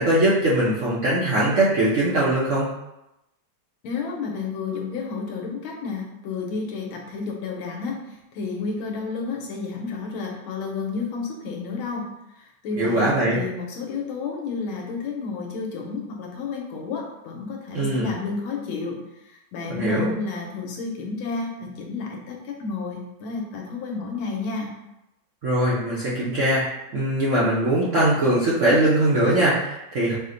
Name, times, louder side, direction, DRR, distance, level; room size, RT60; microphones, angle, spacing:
voice 1, 0.0-2.7 12.8-13.4 17.7-18.1 19.7-20.1 25.4-30.1, right 1 dB, 60° right, -7 dB, 0.8 m, -21 dB
voice 2, 3.8-19.0 19.3-24.7, left 4 dB, 90° left, 1 dB, 1.6 m, -31 dB
5.0 x 2.1 x 3.8 m, 0.90 s
omnidirectional pair, 2.2 m